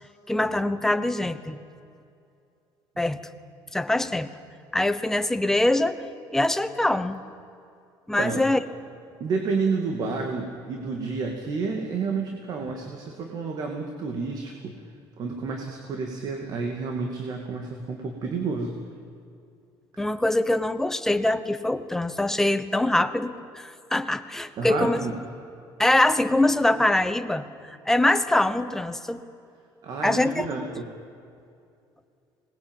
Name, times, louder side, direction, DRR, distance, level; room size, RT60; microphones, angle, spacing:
voice 1, 0.3-1.6 3.0-3.2 3.7-4.3 4.7-6.0 6.3-7.2 8.1-8.6 20.0-25.0 25.8-29.2 30.0-30.7, left 1 dB, 5° left, 10 dB, 1.0 m, -23 dB
voice 2, 9.2-14.7 15.2-18.7 24.6-25.1 29.8-30.9, right 4 dB, 50° right, 3 dB, 2.5 m, -30 dB
25.0 x 20.0 x 9.2 m, 2.5 s
cardioid pair, 155°, 9 cm